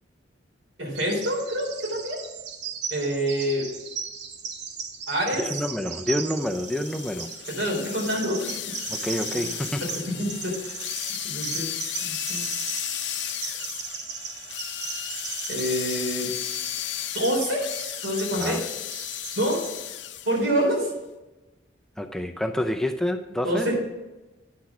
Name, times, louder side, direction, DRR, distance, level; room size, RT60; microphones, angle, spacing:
voice 1, 0.8-2.2 2.9-3.7 5.1-5.4 7.5-8.5 9.3-9.5 9.8-10.7 11.2-11.7 12.0-12.5 15.5-16.3 17.1-17.6 18.0-18.6 19.4-19.6 20.2-20.9 23.4-23.8, equal, 80° right, -2 dB, 3.9 m, -26 dB
Bird vocalization bird call bird song, 0.9-19.7, right 6 dB, 65° right, 1.0 m, -37 dB
voice 2, 5.4-7.3 8.9-9.8 18.3-18.6 22.0-23.7, left 1 dB, 5° left, 5 dB, 0.4 m, -28 dB
sound 1, 6.5-20.4, left 11 dB, 70° left, 0.6 m, -34 dB
9.5 x 6.1 x 5.9 m, 1.0 s
head